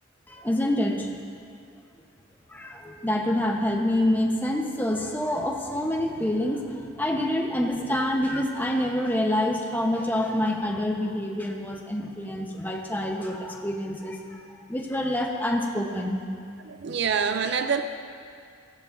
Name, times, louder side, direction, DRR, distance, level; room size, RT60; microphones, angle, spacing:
voice 1, 0.3-1.1 2.5-14.2 14.7-16.2, left 1 dB, 10° left, 1 dB, 0.9 m, -27 dB
voice 2, 16.6-17.8, right 6 dB, 60° right, 8 dB, 0.4 m, -26 dB
16.0 x 14.0 x 2.6 m, 2.3 s
head